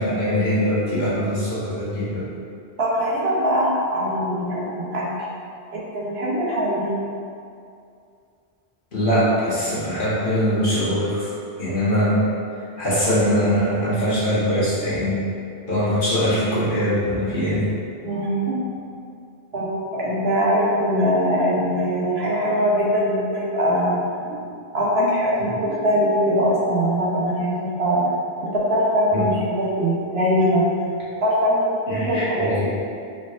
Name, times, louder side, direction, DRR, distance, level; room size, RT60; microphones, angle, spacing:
voice 1, 0.0-2.2 8.9-11.3 11.6-12.2 12.8-15.2 15.7-17.6 25.0-25.1 29.1-29.3 31.9-32.6, equal, 50° left, -10 dB, 1.3 m, -22 dB
voice 2, 2.8-5.1 5.7-6.9 18.0-18.6 19.5-24.0 24.7-28.1 28.4-30.6 31.2-32.6, equal, 70° right, -6 dB, 1.1 m, -22 dB
4.4 x 3.6 x 2.4 m, 2.4 s
omnidirectional pair, 1.1 m